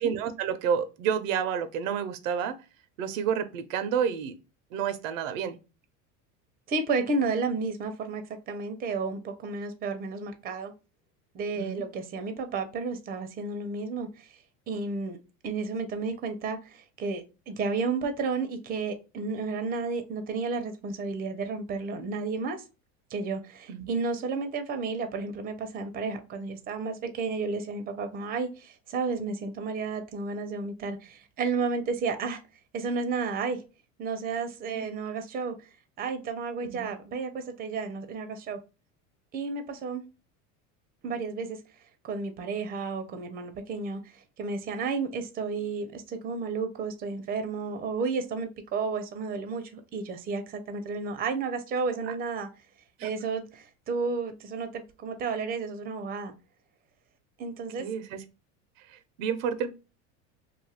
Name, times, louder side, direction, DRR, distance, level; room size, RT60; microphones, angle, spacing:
voice 1, 0.0-2.6 3.0-4.4 4.7-5.6 11.6-11.8 23.7-23.9 34.7-34.8 36.7-36.8 52.1-52.2 53.0-53.1 57.8-58.2 58.9-59.7, right 7 dB, 80° right, 0.6 m, -30 dB
voice 2, 6.7-10.7 11.3-14.4 14.7-15.2 15.4-22.6 23.1-32.4 32.7-33.6 34.0-35.6 36.0-38.6 39.3-40.0 41.0-41.6 42.0-52.5 53.0-56.3 57.4-57.9, right 4 dB, 25° right, 0.5 m, -32 dB
2.6 x 2.4 x 2.8 m
supercardioid pair, 100°, 38 cm